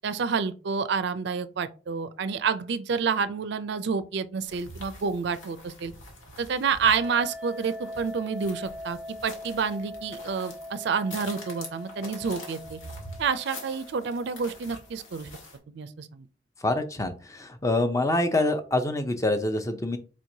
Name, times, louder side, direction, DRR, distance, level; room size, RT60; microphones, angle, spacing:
voice 1, 0.0-5.9 6.4-12.8 13.2-15.3 15.7-16.3, right 5 dB, 60° right, 0.4 m, -29 dB
sound 1, 4.4-15.6, left 1 dB, 90° left, 1.5 m, -45 dB
sound 2, 6.8-15.0, left 1 dB, 5° right, 0.8 m, -42 dB
voice 2, 16.6-20.0, left 2 dB, 15° left, 0.5 m, -26 dB
4.5 x 4.3 x 2.7 m
head